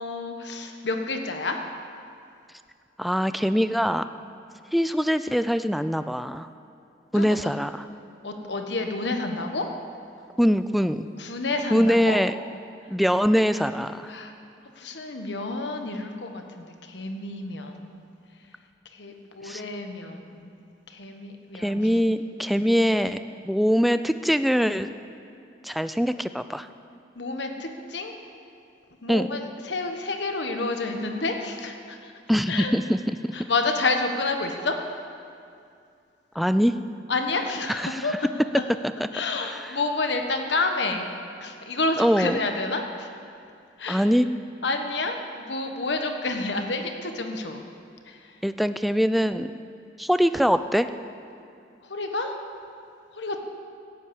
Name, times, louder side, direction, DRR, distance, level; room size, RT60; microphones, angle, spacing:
voice 1, 0.0-1.6 7.1-7.3 8.2-9.7 11.2-12.2 14.1-14.3 14.8-18.0 18.9-20.5 20.9-21.9 27.2-28.1 29.0-32.1 32.5-32.7 33.3-34.8 37.1-38.3 39.1-41.0 41.4-43.1 43.8-44.0 44.6-47.6 48.1-48.3 51.8-52.3 53.1-53.4, left 3 dB, 70° left, 5 dB, 1.3 m, -29 dB
voice 2, 3.0-4.1 4.7-6.5 7.1-7.9 10.4-11.1 11.7-12.3 12.9-14.1 19.4-19.6 21.5-23.2 23.5-24.9 25.6-26.7 29.1-29.3 32.3-33.0 36.4-36.7 37.8-38.1 39.5-39.8 42.0-42.4 43.9-44.3 48.4-49.5 50.0-50.9, equal, ahead, 11 dB, 0.4 m, -23 dB
15.5 x 8.5 x 8.7 m, 2.4 s
head